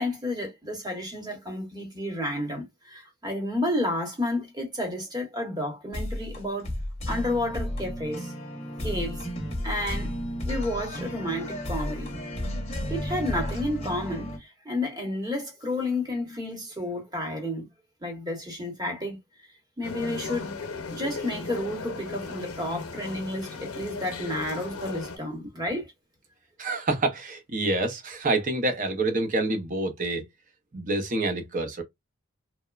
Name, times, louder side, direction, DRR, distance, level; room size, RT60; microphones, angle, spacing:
voice 1, 0.0-6.7 7.1-8.3 8.8-9.2 9.6-10.1 10.5-12.1 12.9-17.6 18.0-19.2 19.8-20.5 20.9-25.9, left 1 dB, 20° right, 1.0 m, -31 dB
sound 1, 5.9-14.4, equal, 30° left, 0.7 m, -33 dB
sound 2, 19.8-25.2, left 4 dB, 85° left, 0.7 m, -36 dB
voice 2, 26.6-30.3 30.7-31.8, right 2 dB, 35° right, 0.6 m, -27 dB
2.9 x 2.1 x 2.3 m
head